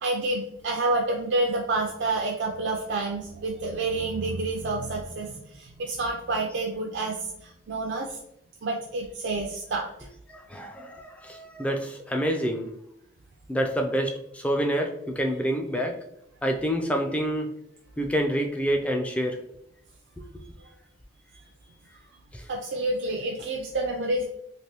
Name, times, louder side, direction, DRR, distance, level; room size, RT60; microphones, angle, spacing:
voice 1, 0.0-8.2 8.6-9.9 20.6-20.7 22.5-24.3, right 2 dB, 85° right, 0 dB, 0.4 m, -28 dB
voice 2, 10.3-12.7 13.5-16.0 16.4-17.5 18.0-19.4 20.2-20.3 22.3-22.5, equal, 5° left, 3 dB, 0.3 m, -27 dB
3.2 x 2.6 x 2.9 m, 0.78 s
head